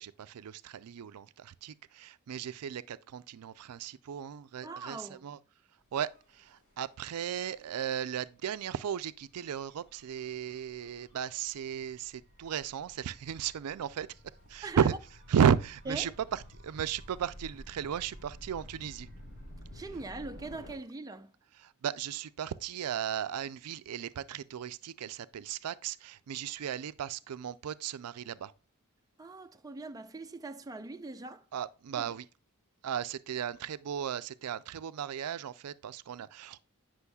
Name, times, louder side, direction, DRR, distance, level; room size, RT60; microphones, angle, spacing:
voice 1, 0.0-5.4 5.9-14.1 14.5-14.9 15.3-19.1 21.6-28.5 31.5-32.2 32.8-36.6, right 8 dB, 90° right, 0.4 m, -34 dB
voice 2, 4.6-5.3 14.6-15.0 15.9-16.1 19.7-21.3 29.2-31.5 32.0-32.1, right 3 dB, 15° right, 0.5 m, -41 dB
Gull seagull / Waves surf / Siren, 6.0-20.7, equal, 55° left, 4.3 m, -53 dB
9.6 x 6.2 x 2.3 m
head